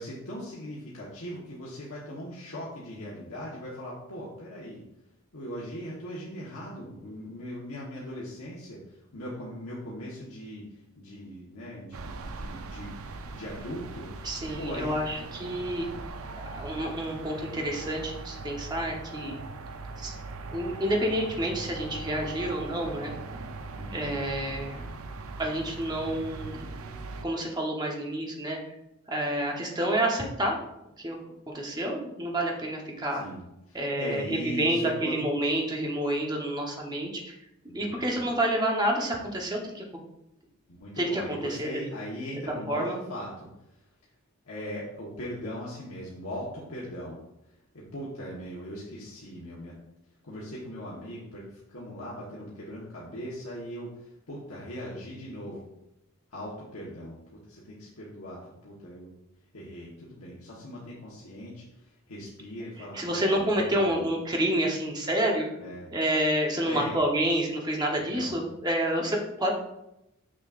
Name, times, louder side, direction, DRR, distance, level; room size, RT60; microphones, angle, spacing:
voice 1, 0.0-4.8 5.3-14.1 14.6-15.0 23.8-24.1 33.2-35.2 37.7-38.3 40.7-43.5 44.4-47.2 47.7-49.8 50.2-55.7 56.3-59.1 59.5-64.0 65.6-65.9 66.7-67.0 68.1-68.4, equal, 85° left, -6 dB, 1.2 m, -39 dB
sound 1, 11.9-27.3, right 3 dB, 80° right, 0.5 m, -40 dB
voice 2, 14.2-15.9 16.5-19.4 20.0-20.1 20.5-23.1 23.9-24.9 25.4-26.7 27.2-28.7 29.1-30.6 31.0-31.2 31.5-33.2 33.7-37.4 37.7-39.8 41.0-41.7 42.7-43.0 62.9-65.5 65.9-69.5, right 1 dB, 20° right, 0 dB, 1.0 m, -29 dB
6.3 x 6.2 x 2.5 m, 0.86 s
head